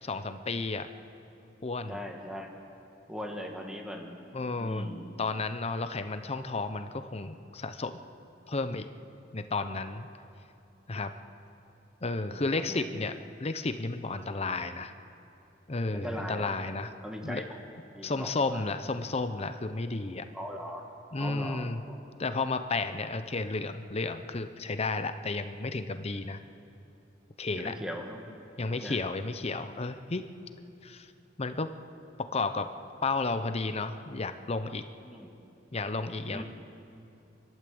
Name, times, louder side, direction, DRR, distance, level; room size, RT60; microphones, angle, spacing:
voice 1, 0.0-0.9 1.6-2.0 4.3-4.9 5.2-8.0 8.5-8.9 9.3-10.1 10.9-11.1 12.0-13.1 13.4-14.9 15.7-16.9 17.2-17.4 18.0-20.3 21.1-21.8 22.2-26.4 27.4-27.7 28.6-30.3 30.8-31.1 31.4-31.7 32.3-32.7 33.0-34.8 35.7-36.4, left 3 dB, 35° left, 9 dB, 0.8 m, -32 dB
voice 2, 1.9-2.5 3.1-4.2 4.6-5.1 12.2-12.8 15.9-16.5 17.0-17.4 17.9-18.6 20.3-20.9 21.2-22.0 27.6-28.2 28.7-29.0 35.0-35.3 36.3-36.4, equal, 5° right, 1 dB, 2.1 m, -39 dB
28.5 x 12.0 x 7.9 m, 2.9 s
head